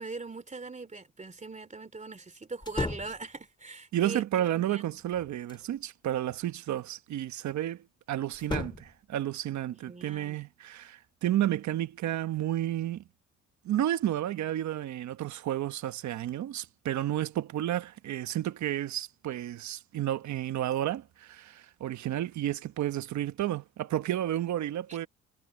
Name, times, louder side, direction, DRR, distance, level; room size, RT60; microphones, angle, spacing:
voice 1, 0.0-4.2 4.5-4.8 9.9-10.4, right 3 dB, 25° right, 3.0 m, -41 dB
sound 1, 2.6-3.3 4.9-5.7 8.3-9.0, left 2 dB, 15° left, 2.9 m, -35 dB
voice 2, 3.9-13.0 13.6-25.1, right 12 dB, 70° right, 1.1 m, -31 dB
cardioid pair, 90°, 30 cm